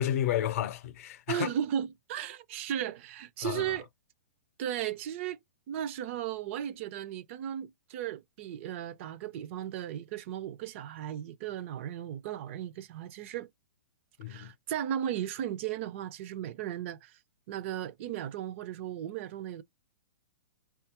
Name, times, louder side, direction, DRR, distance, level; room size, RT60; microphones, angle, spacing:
voice 1, 0.0-1.5 3.4-3.7 14.2-14.5, left 11 dB, 55° left, 0.6 m, -31 dB
voice 2, 1.3-3.9 4.6-5.4 5.7-13.5 14.3-17.2 17.5-19.6, right 10 dB, 45° right, 0.4 m, -36 dB
5.4 x 2.3 x 2.8 m
hypercardioid pair, 135°, 9 cm